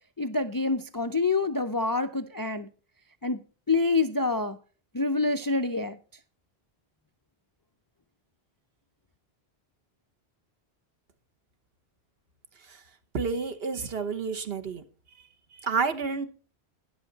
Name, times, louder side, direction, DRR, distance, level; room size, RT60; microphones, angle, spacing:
voice 1, 0.2-2.7 3.2-3.4 3.7-4.6 4.9-6.0, left 3 dB, 30° left, 0.4 m, -26 dB
voice 2, 13.1-14.8 15.6-16.3, right 5 dB, 65° right, 1.2 m, -29 dB
13.5 x 9.9 x 3.9 m
omnidirectional pair, 1.1 m